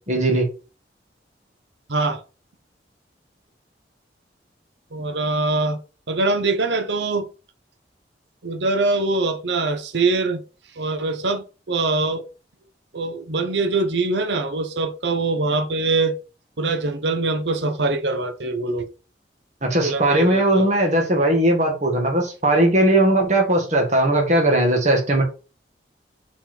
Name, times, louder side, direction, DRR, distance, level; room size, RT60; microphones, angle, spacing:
voice 1, 0.1-0.5 19.6-25.2, right 1 dB, 40° right, 1.9 m, -18 dB
voice 2, 1.9-2.2 4.9-5.8 6.1-7.3 8.4-10.4 10.8-12.3 12.9-16.2 16.6-18.9 19.8-20.7, right 3 dB, 80° right, 0.9 m, -23 dB
5.8 x 4.3 x 4.3 m
head